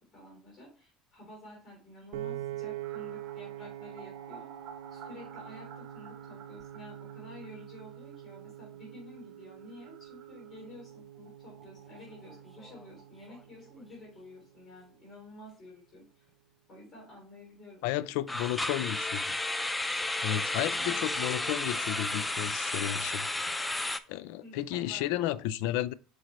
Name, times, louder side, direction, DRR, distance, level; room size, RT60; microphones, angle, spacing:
voice 1, 0.1-4.5 4.9-16.3 16.7-17.8 20.7-21.0 24.4-25.4, left 1 dB, 30° left, 3.4 m, -51 dB
Piano, 2.1-14.4, right 12 dB, 90° right, 0.7 m, -44 dB
sound 1, 2.8-14.4 14.7-14.8 15.1-15.2 18.2-18.3 18.5-18.6 18.9-20.6 21.0-21.1, right 6 dB, 55° right, 1.1 m, -54 dB
sound 2, 12.1-12.4 12.6-12.8 13.3-13.4 18.3-24.0, left 2 dB, 10° left, 0.4 m, -32 dB
voice 2, 17.8-19.4 20.2-23.5 24.1-25.9, left 13 dB, 80° left, 0.3 m, -33 dB
6.3 x 4.9 x 3.1 m
cardioid pair, 130°, 0 cm